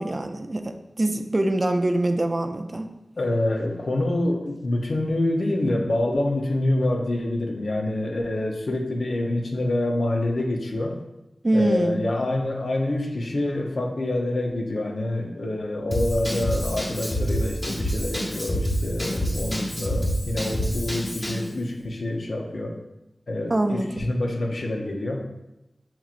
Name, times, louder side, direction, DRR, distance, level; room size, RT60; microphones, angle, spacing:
voice 1, 0.0-2.9 11.4-12.0 23.5-24.1, right 1 dB, 35° right, 6 dB, 0.4 m, -24 dB
voice 2, 3.2-11.0 11.5-22.8 23.3-25.2, left 1 dB, 75° left, 1 dB, 0.7 m, -26 dB
Drum kit / Drum, 15.9-21.5, equal, 20° left, 1.0 m, -27 dB
7.1 x 3.0 x 2.5 m, 0.92 s
wide cardioid pair, 85°, 0 cm